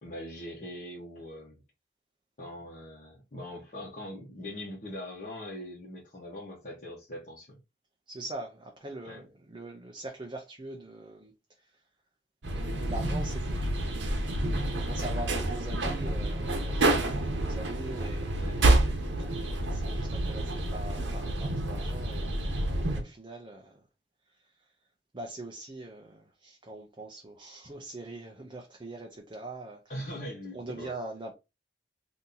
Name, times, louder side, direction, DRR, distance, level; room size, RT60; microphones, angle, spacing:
voice 1, 0.0-1.6 2.4-7.6 9.0-9.2 18.4-18.6 29.9-30.9, left 1 dB, 45° left, 1.0 m, -41 dB
voice 2, 8.1-11.3 12.5-23.8 25.1-29.8 30.5-31.3, right 2 dB, 25° right, 0.5 m, -43 dB
sound 1, 12.4-23.0, right 1 dB, 75° right, 0.9 m, -28 dB
2.8 x 2.8 x 3.7 m
head